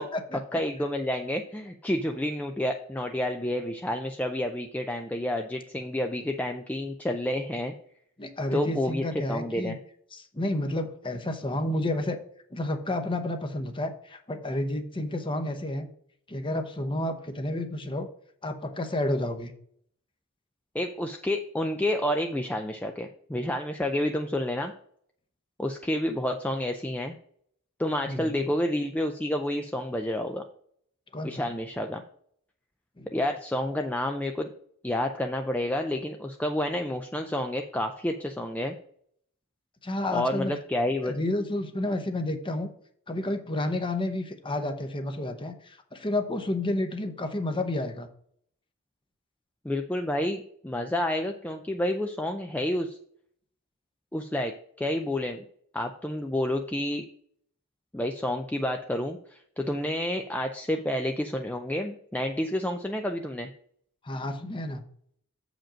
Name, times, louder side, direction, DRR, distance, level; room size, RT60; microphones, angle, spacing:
voice 1, 0.5-7.7 8.5-9.8 20.7-24.7 25.6-27.2 27.8-30.4 31.2-32.0 33.1-34.5 34.8-38.7 40.1-41.1 49.6-53.0 54.1-55.4 55.7-57.1 57.9-63.5, left 1 dB, 5° left, 4 dB, 0.4 m, -29 dB
voice 2, 8.2-9.7 10.1-12.2 12.5-15.9 16.3-18.1 18.4-19.5 28.1-28.4 31.1-31.5 33.0-33.1 39.8-40.5 41.0-42.7 43.1-48.1 64.0-64.8, left 1 dB, 25° left, 7 dB, 0.8 m, -30 dB
7.5 x 5.1 x 5.1 m, 0.64 s
head